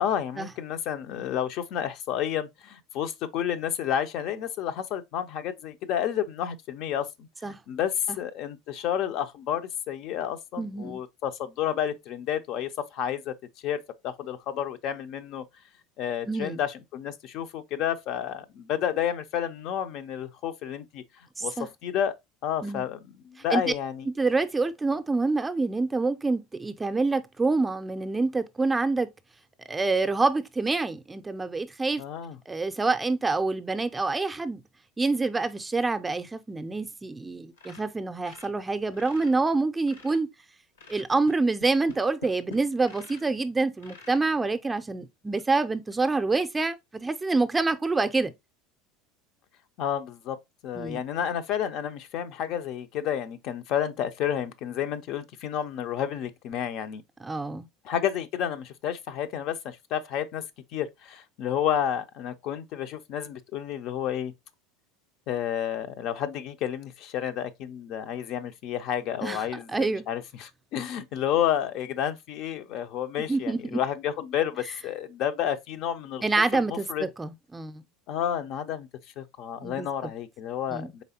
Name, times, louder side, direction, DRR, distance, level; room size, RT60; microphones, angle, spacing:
voice 1, 0.0-7.1 7.4-13.3 13.6-15.4 16.0-21.0 21.4-22.1 22.4-23.0 23.2-24.1 32.0-32.4 49.8-50.4 50.6-57.0 57.8-60.4 60.7-64.3 65.3-76.2 76.5-77.1 78.1-78.9 79.2-81.0, left 9 dB, 55° left, 0.4 m, -30 dB
voice 2, 10.6-11.0 16.3-16.6 21.4-21.7 22.6-22.9 23.5-23.6 24.0-29.1 29.7-32.0 32.5-34.6 35.0-40.3 40.9-48.3 50.8-51.0 57.2-57.7 69.2-69.4 69.7-70.1 73.2-73.8 76.2-77.8 79.6-80.1 80.7-80.9, right 3 dB, 15° right, 0.4 m, -27 dB
sound 1, 37.5-39.4 39.7-40.3 40.8-43.3 43.8-44.3 44.9-45.0 45.4-45.5 45.9-46.1, left 3 dB, 85° left, 1.0 m, -47 dB
4.0 x 3.3 x 2.7 m
hypercardioid pair, 80°, 0 cm